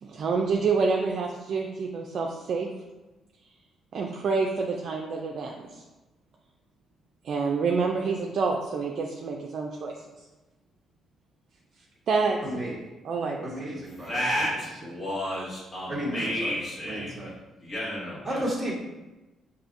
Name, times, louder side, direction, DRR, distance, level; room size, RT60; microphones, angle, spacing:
voice 1, 0.0-2.7 3.9-5.8 7.2-9.9 12.1-12.4 13.0-13.5, right 4 dB, 60° right, 0 dB, 0.4 m, -27 dB
voice 2, 12.4-12.8 13.4-14.5 15.9-17.3 18.2-18.8, equal, 15° right, -6 dB, 1.1 m, -33 dB
voice 3, 13.7-17.3 17.6-18.4, equal, 45° left, -8 dB, 1.4 m, -32 dB
4.9 x 2.6 x 2.6 m, 1.1 s
cardioid pair, 90°, 0 cm